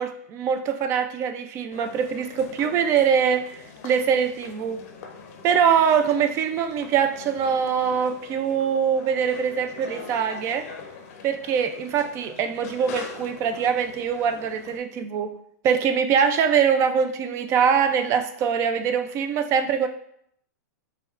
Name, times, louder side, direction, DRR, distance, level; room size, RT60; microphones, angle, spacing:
voice 1, 0.0-4.8 5.4-10.6 11.2-15.3 15.6-19.9, right 7 dB, 30° right, 9 dB, 0.3 m, -23 dB
sound 1, 1.7-14.8, left 5 dB, 50° left, 0.5 m, -43 dB
5.3 x 2.2 x 2.4 m, 0.69 s
hypercardioid pair, 135°, 10 cm